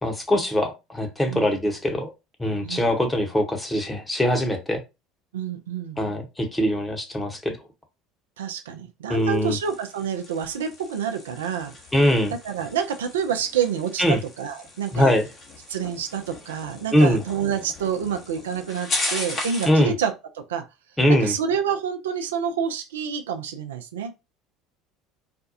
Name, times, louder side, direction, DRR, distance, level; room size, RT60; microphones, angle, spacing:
voice 1, 0.0-2.1 2.4-4.8 6.0-7.6 9.1-9.6 11.9-12.3 14.0-14.2 14.9-15.3 16.9-17.2 19.6-19.9 21.0-21.3, equal, 10° left, 1.0 m, -22 dB
voice 2, 5.3-6.1 8.4-11.7 12.4-15.1 15.7-20.6 21.1-24.1, right 7 dB, 80° right, 0.4 m, -28 dB
sound 1, 9.1-19.8, left 2 dB, 45° left, 1.2 m, -36 dB
4.1 x 2.2 x 2.8 m
hypercardioid pair, 65°, 0 cm